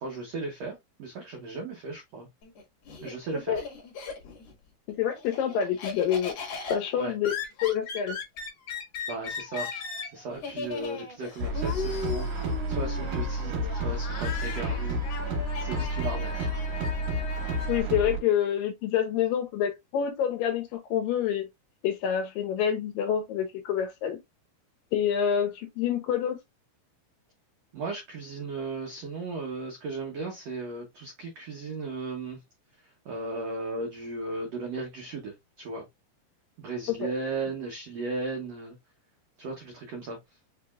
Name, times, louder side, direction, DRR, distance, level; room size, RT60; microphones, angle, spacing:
voice 1, 0.0-2.3 3.0-3.6 7.0-7.2 9.1-9.7 10.1-15.0 15.6-16.5 27.7-32.4 33.0-35.9 36.6-38.8 39.4-40.2, right 3 dB, 85° right, 1.4 m, -36 dB
Laughter, 2.4-4.5 4.9-17.8, left 4 dB, 50° left, 2.0 m, -38 dB
voice 2, 4.9-6.3 6.7-7.3 7.6-8.2 17.7-21.5 21.8-24.2 24.9-26.4 37.0-37.1, left 9 dB, 75° left, 2.2 m, -27 dB
sound 1, 11.4-18.2, equal, 65° right, 1.7 m, -30 dB
6.7 x 2.9 x 2.3 m
omnidirectional pair, 4.5 m